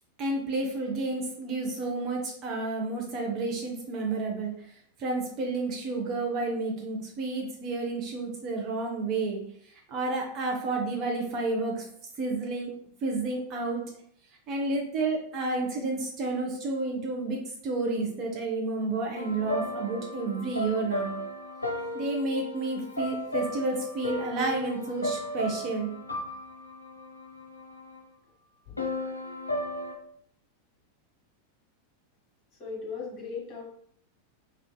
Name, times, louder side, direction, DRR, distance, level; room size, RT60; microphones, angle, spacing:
voice 1, 0.2-4.5 5.0-9.4 9.9-11.8 12.2-12.7 13.0-13.8 14.5-21.2 21.9-25.9, right 3 dB, 35° right, 0 dB, 0.5 m, -30 dB
sound 1, 19.2-28.0 28.8-30.0, left 1 dB, 80° left, 0.3 m, -35 dB
voice 2, 32.6-33.6, left 5 dB, 35° left, -3 dB, 1.1 m, -37 dB
2.5 x 2.3 x 2.2 m, 0.64 s
figure-of-eight pair, 90°, 0 cm